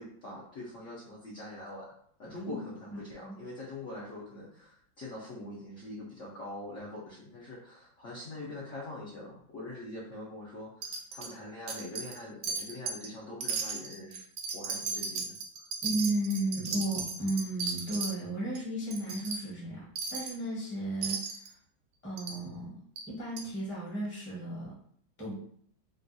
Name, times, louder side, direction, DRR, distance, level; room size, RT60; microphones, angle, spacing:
voice 1, 0.0-1.9 2.2-14.2 14.5-15.6, left 1 dB, 70° left, -6 dB, 0.7 m, -43 dB
voice 2, 2.9-3.3 15.8-19.8 20.1-21.2 22.0-22.7 23.1-24.7 25.2-25.3, right 1 dB, 10° left, -7 dB, 0.5 m, -34 dB
Wind chime, 10.8-11.3 11.7-12.2 12.4-13.1 13.4-18.1 18.5-18.6 18.9-19.4 20.0-20.4 21.0-21.5 22.2-22.4 23.0-23.1 23.4-23.5, right 5 dB, 75° right, 1.1 m, -35 dB
3.4 x 2.3 x 2.6 m, 0.63 s
omnidirectional pair, 2.2 m